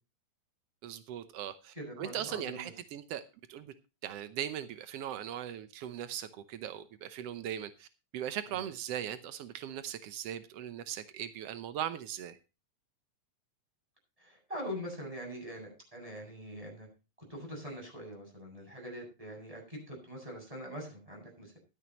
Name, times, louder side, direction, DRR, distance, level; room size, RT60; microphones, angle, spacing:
voice 1, 0.8-3.2 3.5-3.7 4.0-7.9 8.1-12.4, right 10 dB, 90° right, 1.3 m, -39 dB
voice 2, 1.7-2.7 8.5-8.6 14.2-16.9 17.3-21.6, equal, 10° right, 7.6 m, -43 dB
15.0 x 12.5 x 3.0 m
omnidirectional pair, 4.0 m